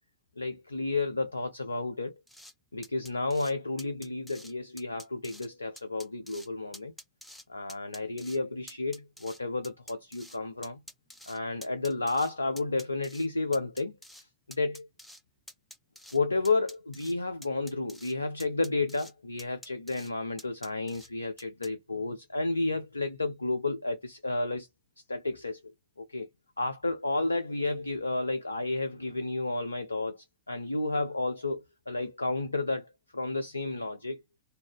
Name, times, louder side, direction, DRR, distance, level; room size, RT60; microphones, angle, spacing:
voice 1, 0.4-2.2 2.7-6.9 7.5-10.8 11.3-14.3 14.6-14.9 16.1-24.7 25.1-26.3 26.6-34.2, left 2 dB, 80° left, 0.3 m, -32 dB
sound 1, 2.3-2.5 2.8-3.5 3.8-4.5 4.8-5.5 5.8-6.5 6.7-7.4 7.7-8.4 8.7-10.4 10.6-12.3 12.6-13.3 13.5-14.2 14.5-15.2 15.5-16.2 16.4-17.1 17.4-18.1 18.4-19.1 19.4-20.1 20.4-21.1 21.4-21.7, equal, ahead, 0.5 m, -48 dB
2.4 x 2.1 x 3.2 m
figure-of-eight pair, 90°, 0 cm